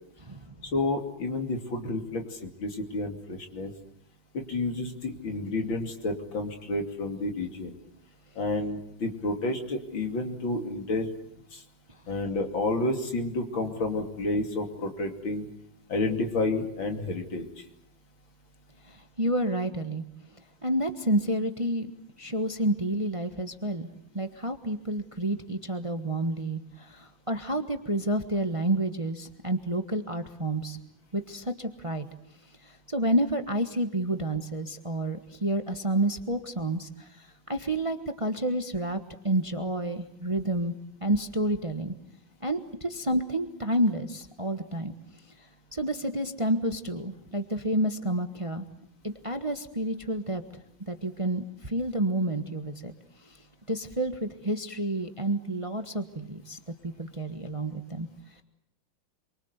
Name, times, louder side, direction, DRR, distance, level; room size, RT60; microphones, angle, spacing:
voice 1, 0.6-3.7 4.3-7.7 8.4-11.1 11.5-11.6 12.1-15.5 15.9-17.5, left 2 dB, 75° left, 4 dB, 3.5 m, -30 dB
voice 2, 18.9-20.0 20.6-21.9 22.2-23.9 24.1-30.8 31.1-32.1 32.7-39.0 39.2-40.7 41.0-41.9 42.4-44.9 45.7-48.6 49.0-50.4 50.9-52.9 53.7-58.1, right 1 dB, 20° right, 7 dB, 1.2 m, -29 dB
27.5 x 24.0 x 8.1 m, 0.73 s
omnidirectional pair, 2.2 m